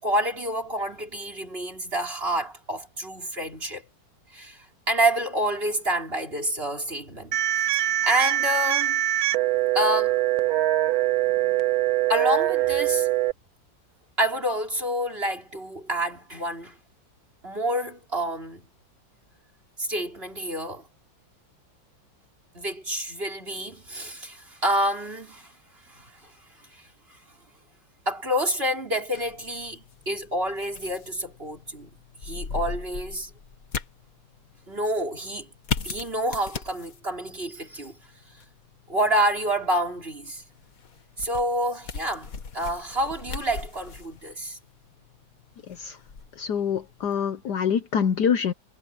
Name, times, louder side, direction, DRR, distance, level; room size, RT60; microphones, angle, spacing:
voice 1, 0.0-3.8 4.3-7.4 7.7-9.0 9.7-10.2 12.1-13.1 14.2-16.8 17.4-18.7 19.8-20.9 22.5-25.5 25.9-26.3 26.7-26.8 28.1-31.9 32.2-33.3 34.7-35.5 35.8-38.0 38.9-40.4 41.2-44.6, right 1 dB, 30° right, 5.5 m, -28 dB
sound 1, 7.3-13.3, right 14 dB, 65° right, 1.0 m, -23 dB
sound 2, 29.1-47.2, left 6 dB, 50° left, 1.8 m, -39 dB
voice 2, 46.4-48.5, left 7 dB, 65° left, 1.4 m, -25 dB
omnidirectional pair, 2.1 m